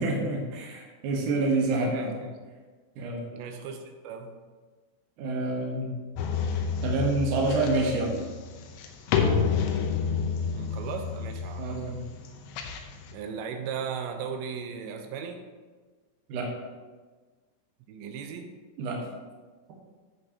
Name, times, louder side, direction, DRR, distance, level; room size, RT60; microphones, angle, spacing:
voice 1, 0.0-2.2 3.0-3.2 5.2-5.9 6.8-8.1 11.6-12.0 16.3-16.5 18.8-19.0, right 2 dB, 65° right, -1 dB, 2.3 m, -27 dB
voice 2, 3.3-4.3 10.5-11.8 13.1-15.5 17.9-18.5, right 6 dB, 90° right, 4 dB, 3.0 m, -37 dB
sound 1, 6.2-13.1, left 6 dB, 90° left, 3.0 m, -29 dB
11.0 x 7.6 x 2.8 m, 1.4 s
omnidirectional pair, 4.9 m